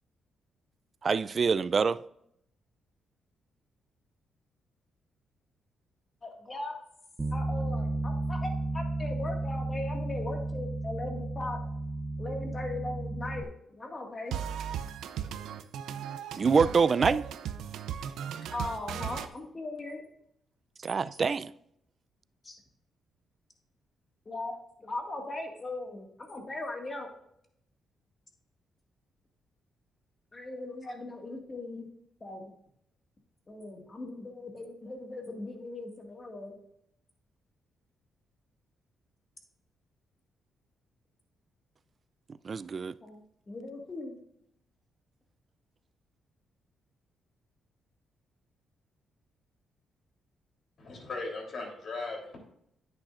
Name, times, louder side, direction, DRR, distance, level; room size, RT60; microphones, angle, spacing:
voice 1, 1.0-2.0 16.4-17.2 20.8-21.5 42.4-42.9, right 5 dB, 40° right, 0.3 m, -25 dB
voice 2, 6.2-6.7 7.3-8.5 8.7-11.6 12.2-13.5 13.8-14.4 18.5-20.0 22.5-22.6 24.3-24.6 24.8-27.1 30.3-31.9 32.2-32.5 33.5-36.5 43.0-44.2, left 2 dB, 30° left, 1.9 m, -39 dB
Bass guitar, 7.2-13.4, right 2 dB, 20° right, 0.7 m, -33 dB
sound 1, 14.3-19.3, right 9 dB, 90° right, 0.6 m, -36 dB
voice 3, 50.8-52.4, left 3 dB, 55° left, 3.4 m, -38 dB
10.0 x 8.9 x 2.5 m
cardioid pair, 105°, 0 cm